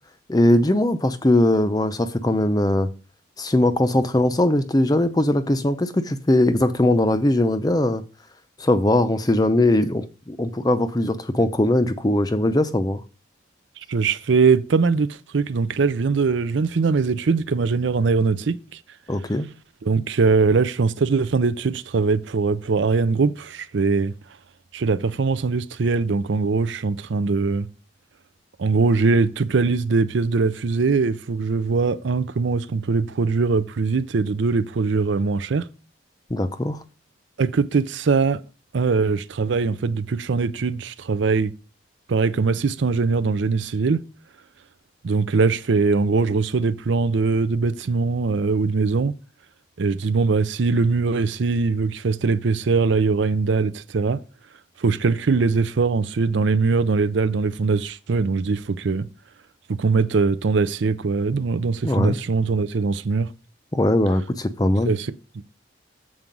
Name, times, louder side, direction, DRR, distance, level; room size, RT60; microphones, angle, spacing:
voice 1, 0.3-2.9 3.4-8.0 8.6-13.0 19.1-19.5 36.3-36.8 61.8-62.2 63.7-64.9, left 1 dB, 20° left, 0.5 m, -20 dB
voice 2, 13.9-15.1 15.3-18.8 19.8-24.1 24.7-27.7 28.6-35.7 37.4-38.4 38.7-41.5 42.1-44.0 45.0-49.1 49.8-54.2 54.8-59.1 59.8-63.3 64.9-65.1, right 4 dB, 65° right, 0.5 m, -21 dB
7.5 x 4.7 x 5.3 m
head